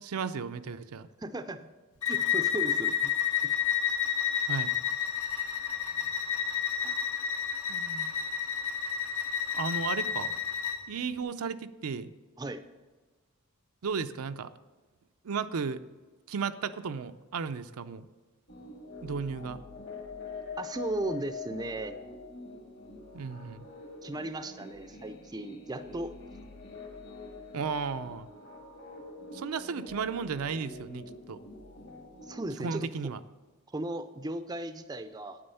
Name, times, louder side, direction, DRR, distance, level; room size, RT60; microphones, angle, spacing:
voice 1, 0.0-1.1 4.5-4.7 7.7-8.1 9.5-10.3 10.9-12.1 13.8-14.5 15.2-15.8 16.3-18.1 19.0-19.6 23.1-23.6 27.5-28.3 29.3-31.4 32.6-33.2, right 5 dB, 75° right, 10 dB, 0.5 m, -34 dB
voice 2, 1.2-1.7 2.0-3.1 3.4-3.6 6.8-7.0 12.4-12.6 20.6-22.0 24.0-26.2 32.2-33.1 33.7-35.4, right 1 dB, 20° right, 10 dB, 0.4 m, -36 dB
Bowed string instrument, 2.0-10.8, left 8 dB, 75° left, 1.5 m, -30 dB
sound 1, 18.5-32.4, left 3 dB, 50° left, 1.7 m, -45 dB
9.0 x 8.8 x 5.5 m, 1.3 s
head